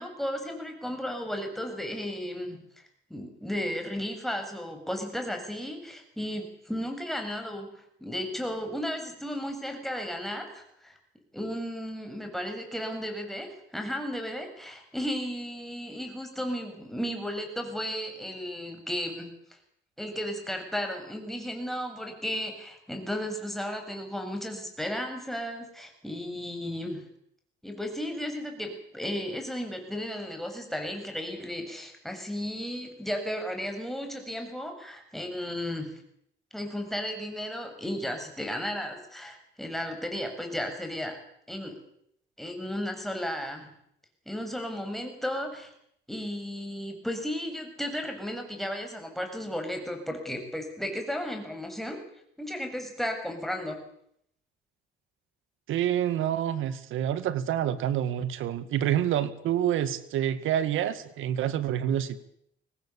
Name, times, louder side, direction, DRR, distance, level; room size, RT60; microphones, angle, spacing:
voice 1, 0.0-2.6 3.1-7.7 8.0-11.0 11.3-19.4 20.0-27.0 27.6-35.9 36.5-41.2 41.5-41.8 42.4-43.7 44.3-45.7 46.1-52.0 52.4-53.8, equal, ahead, 4 dB, 7.4 m, -34 dB
voice 2, 55.7-62.2, right 10 dB, 85° right, 13 dB, 2.0 m, -27 dB
24.0 x 18.5 x 8.5 m, 0.71 s
cardioid pair, 90°, 20 cm